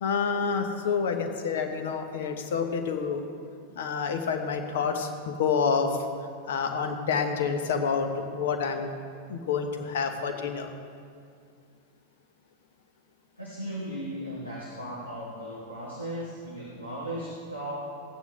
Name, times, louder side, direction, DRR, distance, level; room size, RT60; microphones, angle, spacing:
voice 1, 0.0-3.3 3.8-6.0 6.5-8.9 9.3-10.7, left 6 dB, 60° left, 6 dB, 1.1 m, -28 dB
voice 2, 13.4-17.8, right 1 dB, 90° left, -6 dB, 1.9 m, -36 dB
16.0 x 9.2 x 3.7 m, 2.3 s
figure-of-eight pair, 90°, 0 cm